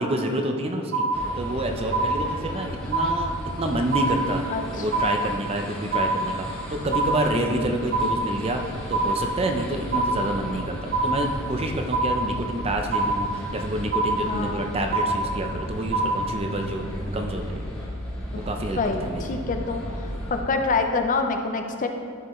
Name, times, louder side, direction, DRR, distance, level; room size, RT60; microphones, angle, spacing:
voice 1, 0.0-4.4 4.8-17.6 18.3-19.2, right 1 dB, 25° right, 4 dB, 0.6 m, -28 dB
sound 1, 0.9-1.6 1.9-2.6 2.9-3.6 3.9-4.6 4.9-5.6 5.9-6.6 6.9-7.6 7.9-8.6 8.9-9.6 9.9-10.6 10.9-11.6 11.9-12.6 12.9-13.6 13.9-14.6 14.9-15.6 15.9-16.2, right 3 dB, 90° right, 1.5 m, -25 dB
sound 2, 1.1-20.4, equal, 5° left, 1.6 m, -35 dB
voice 2, 4.5-5.1 7.3-7.8 14.3-14.6 18.3-18.4 18.8-21.9, left 3 dB, 35° left, 5 dB, 0.5 m, -27 dB
12.0 x 5.3 x 3.1 m, 2.3 s
head